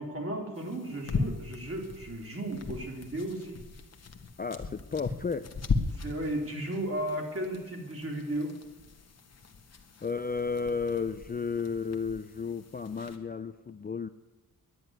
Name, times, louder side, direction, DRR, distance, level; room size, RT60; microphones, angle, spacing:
voice 1, 0.0-3.6 5.9-8.5, right 1 dB, 40° right, 1 dB, 3.5 m, -34 dB
sound 1, 0.5-13.2, left 4 dB, 45° left, 1.4 m, -38 dB
voice 2, 4.4-5.5 10.0-14.1, left 5 dB, 25° left, 10 dB, 0.5 m, -33 dB
11.0 x 10.0 x 9.4 m, 1.2 s
wide cardioid pair, 120°, 36 cm